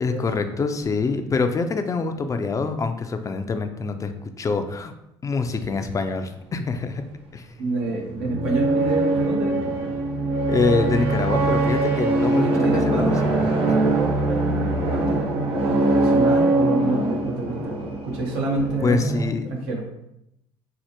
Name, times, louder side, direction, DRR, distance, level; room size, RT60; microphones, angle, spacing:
voice 1, 0.0-4.1 4.4-4.9 5.2-7.0 7.3-7.5 10.5-12.5 12.9-13.8 18.8-19.5, left 4 dB, 30° left, 7 dB, 0.3 m, -25 dB
sound 1, 7.6-19.3, right 2 dB, 55° right, 0.7 m, -22 dB
voice 2, 7.6-9.7 12.3-19.1 19.4-19.8, right 2 dB, 85° right, 0 dB, 0.8 m, -28 dB
4.4 x 2.0 x 2.8 m, 0.83 s
supercardioid pair, 75°, 12 cm